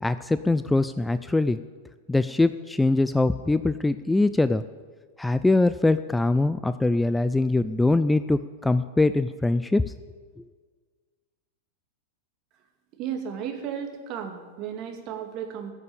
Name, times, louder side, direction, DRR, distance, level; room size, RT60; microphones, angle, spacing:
voice 1, 0.0-1.6 2.1-4.6 5.2-9.8, left 2 dB, 5° left, 13 dB, 0.4 m, -22 dB
voice 2, 12.9-15.7, right 8 dB, 45° right, 5 dB, 2.2 m, -34 dB
14.5 x 6.9 x 8.6 m, 1.5 s
hypercardioid pair, 110°, 0 cm